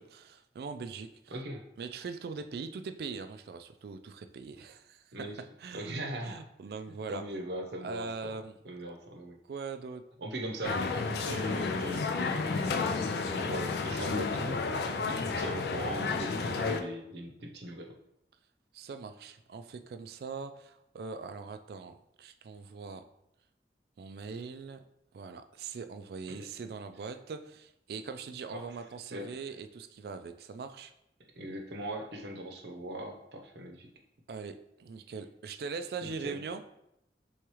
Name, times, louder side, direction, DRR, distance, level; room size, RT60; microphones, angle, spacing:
voice 1, 0.0-1.3 1.8-5.0 5.6-6.0 6.2-7.2 7.8-8.5 9.5-10.0 14.9-15.2 18.7-23.0 24.0-24.8 25.1-30.9 34.3-36.6, right 5 dB, 60° right, 9 dB, 0.3 m, -41 dB
voice 2, 1.3-1.6 5.1-5.4 5.7-6.4 7.1-8.4 8.6-9.4 10.2-10.8 11.2-12.8 13.1-14.6 15.1-18.0 26.3-26.5 28.5-28.8 29.1-29.3 31.4-33.9 36.0-36.4, right 1 dB, 75° right, 2 dB, 0.7 m, -40 dB
sound 1, 10.6-16.8, left 4 dB, 65° left, 0.4 m, -31 dB
4.7 x 3.5 x 3.0 m, 0.81 s
head